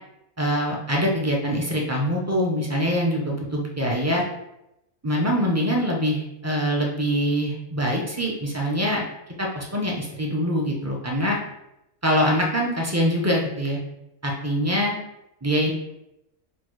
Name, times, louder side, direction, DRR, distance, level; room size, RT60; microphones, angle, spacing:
voice 1, 0.4-4.2 5.0-9.0 9.4-11.4 12.0-13.8 14.2-15.0 15.4-15.7, equal, 20° right, -2 dB, 0.4 m, -24 dB
4.4 x 2.3 x 4.5 m, 0.87 s
omnidirectional pair, 1.4 m